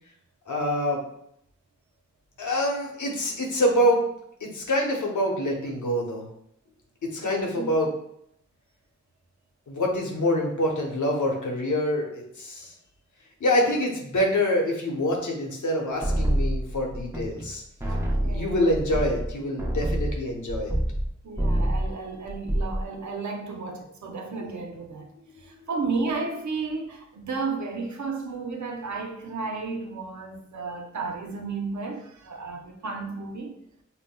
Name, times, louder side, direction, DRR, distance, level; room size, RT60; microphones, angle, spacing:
voice 1, 0.5-1.0 2.4-4.0 4.4-6.3 7.1-7.9 9.7-12.7 13.4-17.6 18.2-20.8 24.4-24.5, left 1 dB, 80° left, 0.9 m, -26 dB
voice 2, 7.2-7.8 17.8-18.8 21.2-25.1 25.4-33.6, right 4 dB, 70° right, 0.7 m, -33 dB
sound 1, 16.0-17.5 17.8-21.1 21.4-21.9 22.3-22.8, right 1 dB, 10° right, 0.7 m, -26 dB
5.5 x 2.1 x 2.2 m
cardioid pair, 40°, 30 cm